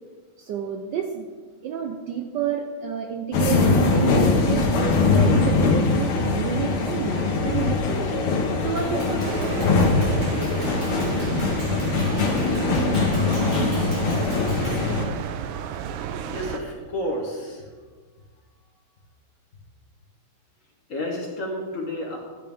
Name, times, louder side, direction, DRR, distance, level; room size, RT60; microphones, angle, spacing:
voice 1, 0.4-1.3 1.6-8.2 8.5-10.5, right 7 dB, 70° right, 3 dB, 1.1 m, -30 dB
sound 1, 3.3-15.0, left 3 dB, 75° left, 1.8 m, -22 dB
Clapping, 8.8-14.9, right 1 dB, 35° right, 3.1 m, -42 dB
sound 2, 9.2-16.6, right 8 dB, 90° right, 1.5 m, -32 dB
voice 2, 16.2-17.8 18.2-18.4 20.9-22.2, left 1 dB, 45° left, 0 dB, 1.3 m, -31 dB
12.0 x 7.8 x 3.5 m, 1.5 s
omnidirectional pair, 2.4 m